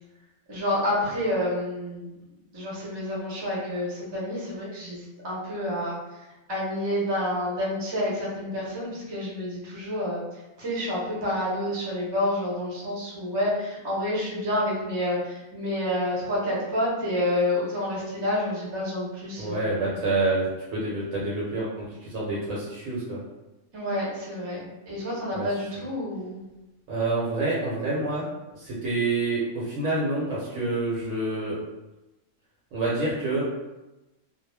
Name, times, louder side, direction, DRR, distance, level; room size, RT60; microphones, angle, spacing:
voice 1, 0.5-2.1 2.5-6.0 6.5-10.2 10.6-19.8 23.7-24.6 24.9-26.4, left 1 dB, 25° right, -6 dB, 0.6 m, -28 dB
voice 2, 19.4-23.2 25.3-25.5 26.9-28.3 28.6-31.6 32.7-33.4, right 2 dB, 75° right, -6 dB, 1.0 m, -27 dB
2.3 x 2.1 x 3.2 m, 1.0 s
omnidirectional pair, 1.5 m